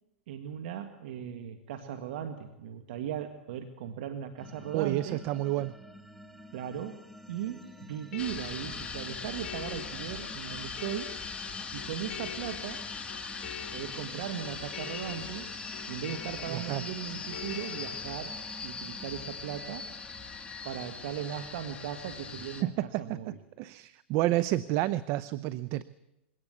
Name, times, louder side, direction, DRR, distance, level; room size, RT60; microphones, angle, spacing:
voice 1, 0.3-5.2 6.5-7.0 7.3-11.1 11.7-12.9 13.7-15.5 15.9-19.9 20.6-23.4, right 9 dB, 60° right, 6 dB, 1.8 m, -38 dB
sound 1, 4.4-21.6, left 1 dB, ahead, 1.3 m, -50 dB
voice 2, 4.7-5.7 16.5-16.8 22.6-23.2 23.6-25.8, right 15 dB, 45° right, 14 dB, 0.7 m, -30 dB
sound 2, 7.5-18.0, left 9 dB, 50° left, 2.0 m, -46 dB
sound 3, 8.2-22.6, left 5 dB, 15° left, 2.5 m, -40 dB
22.0 x 17.5 x 8.1 m, 0.93 s
hypercardioid pair, 115°, 7 cm